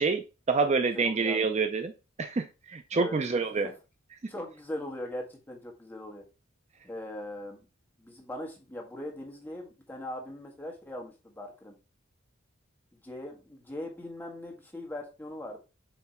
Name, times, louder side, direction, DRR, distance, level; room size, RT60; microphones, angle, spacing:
voice 1, 0.0-1.9 2.2-3.7, right 4 dB, 35° right, 8 dB, 0.5 m, -27 dB
voice 2, 0.9-1.4 2.9-3.2 4.3-6.2 6.8-7.6 8.0-11.7 13.0-15.6, left 1 dB, 10° left, 0 dB, 1.6 m, -40 dB
7.2 x 3.3 x 4.4 m, 0.30 s
head